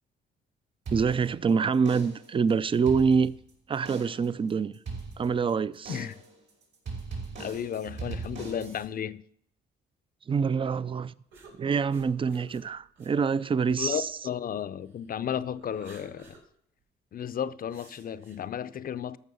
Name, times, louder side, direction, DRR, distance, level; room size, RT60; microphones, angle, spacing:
voice 1, 0.9-3.3 3.7-4.7 5.2-6.0 10.3-11.1 11.6-14.1, right 5 dB, 25° right, 0.4 m, -26 dB
sound 1, 0.9-1.5 1.9-2.4 2.7-3.5 3.9-4.3 4.9-5.5 5.9-6.3 6.9-8.9, right 4 dB, 65° right, 5.9 m, -39 dB
voice 2, 7.4-9.2 13.8-16.3 17.1-19.2, left 9 dB, 45° left, 0.5 m, -33 dB
sound 2, 11.3-14.6 15.1-16.4 16.8-16.9 17.7-18.4, right 3 dB, 85° right, 4.0 m, -54 dB
14.0 x 6.2 x 5.4 m
cardioid pair, 90°, 20 cm